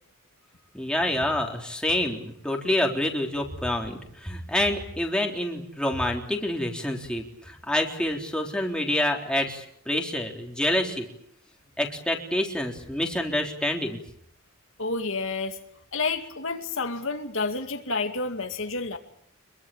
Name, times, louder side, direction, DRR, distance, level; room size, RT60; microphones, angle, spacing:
voice 1, 0.7-11.1 11.8-14.0, left 1 dB, 5° left, 1 dB, 3.7 m, -27 dB
voice 2, 14.8-15.6 15.9-19.0, left 3 dB, 65° left, 5 dB, 2.3 m, -29 dB
25.5 x 23.0 x 8.7 m, 0.68 s
head